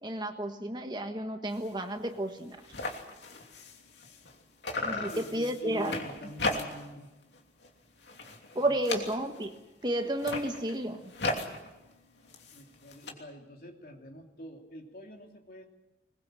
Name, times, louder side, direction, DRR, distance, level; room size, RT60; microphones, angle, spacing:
voice 1, 0.0-2.6 4.8-6.0 8.5-9.6 9.8-11.1, right 1 dB, 25° right, 6 dB, 1.4 m, -32 dB
sound 1, 1.5-1.7 2.1-2.2 2.4-4.4 4.6-7.0 7.3-7.7 8.0-9.5 10.1-13.1, left 2 dB, 75° left, 3.0 m, -37 dB
voice 2, 4.7-7.1 8.5-8.7 12.5-15.6, equal, 50° left, 2 dB, 3.0 m, -45 dB
21.5 x 21.0 x 7.7 m, 1.0 s
head